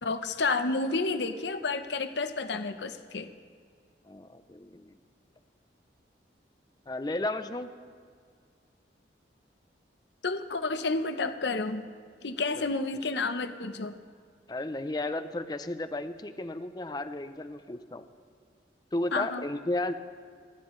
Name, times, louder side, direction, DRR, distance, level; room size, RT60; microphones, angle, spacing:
voice 1, 0.0-3.3 10.2-11.9 12.2-14.0 19.1-19.4, left 3 dB, 70° left, 9 dB, 0.8 m, -30 dB
voice 2, 4.1-4.9 6.9-7.7 12.6-12.7 14.5-18.0 18.9-19.9, left 2 dB, 20° left, 10 dB, 0.5 m, -33 dB
29.5 x 10.5 x 3.2 m, 2.1 s
head